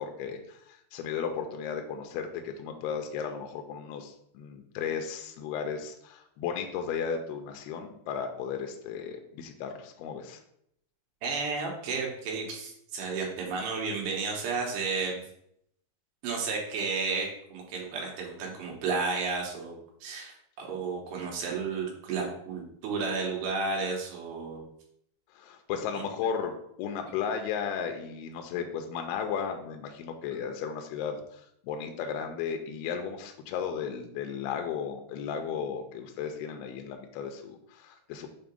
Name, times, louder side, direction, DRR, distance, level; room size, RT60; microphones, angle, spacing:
voice 1, 0.0-10.4 25.3-26.5 26.8-38.3, left 7 dB, 80° left, 4 dB, 2.4 m, -35 dB
voice 2, 11.2-15.2 16.2-24.6 25.9-26.0, right 4 dB, 85° right, -1 dB, 3.3 m, -32 dB
7.0 x 2.8 x 5.2 m, 0.72 s
omnidirectional pair, 4.8 m